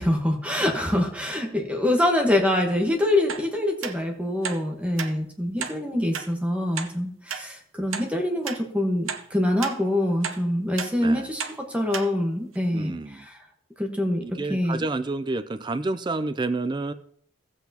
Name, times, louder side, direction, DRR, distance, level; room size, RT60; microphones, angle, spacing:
voice 1, 0.0-11.4 11.7-13.3 13.8-14.2 14.5-14.8, left 1 dB, 5° right, 2 dB, 1.2 m, -25 dB
sound 1, 3.3-3.5 3.8-4.0 4.4-4.6 5.0-5.1 5.6-5.8 6.1-6.3 6.8-6.9 7.3-7.4 7.9-8.1 8.5-8.6 9.1-9.2 9.6-9.8 10.2-10.4 10.8-10.9 11.4-11.6 11.9-12.1 12.5-12.6, right 7 dB, 75° right, 0.8 m, -32 dB
voice 2, 11.0-11.3 12.7-13.2 14.2-16.9, right 2 dB, 20° right, 12 dB, 0.3 m, -29 dB
15.0 x 8.0 x 2.8 m, 0.64 s
head